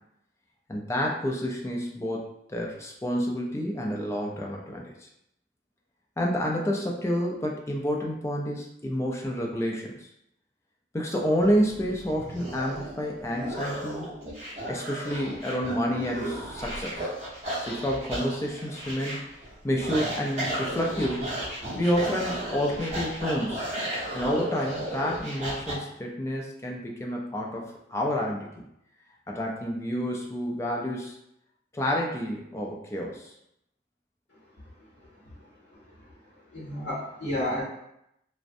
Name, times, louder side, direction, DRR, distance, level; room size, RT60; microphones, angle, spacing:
voice 1, 0.7-5.1 6.2-10.1 10.9-14.1 14.7-17.1 17.6-19.2 19.6-21.3 21.8-23.7 24.1-28.6 29.3-31.2 31.7-33.3, equal, 15° left, -1 dB, 0.3 m, -29 dB
sound 1, 11.4-25.7, right 1 dB, 40° right, 0.9 m, -34 dB
voice 2, 34.8-35.1 35.4-36.2 36.5-37.6, left 1 dB, 75° left, -7 dB, 0.8 m, -33 dB
2.5 x 2.1 x 2.5 m, 0.80 s
head